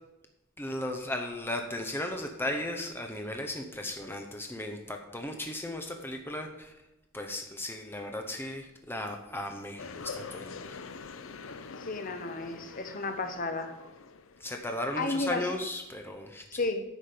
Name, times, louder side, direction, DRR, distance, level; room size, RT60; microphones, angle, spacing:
voice 1, 0.6-6.7 7.1-10.8 14.4-16.4, left 1 dB, 10° left, 4 dB, 0.8 m, -36 dB
sound 1, 9.8-14.7, left 4 dB, 75° left, 0.6 m, -44 dB
voice 2, 11.8-13.7 15.0-15.5 16.6-16.8, left 3 dB, 40° left, 7 dB, 0.9 m, -32 dB
10.0 x 7.2 x 5.1 m, 0.93 s
head